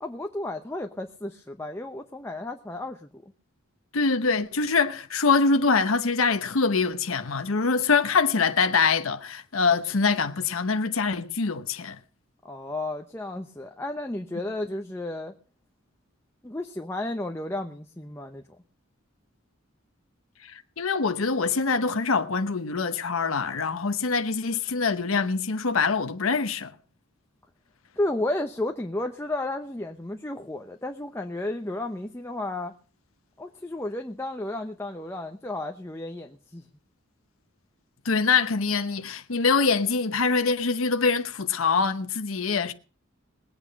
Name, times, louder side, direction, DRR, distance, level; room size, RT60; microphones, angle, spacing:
voice 1, 0.0-3.2 12.4-15.3 16.4-18.4 28.0-32.7 33.4-36.6, left 1 dB, 15° left, 0.8 m, -33 dB
voice 2, 3.9-12.0 20.8-26.7 38.0-42.7, left 4 dB, 90° left, 0.9 m, -24 dB
20.0 x 8.8 x 5.3 m
head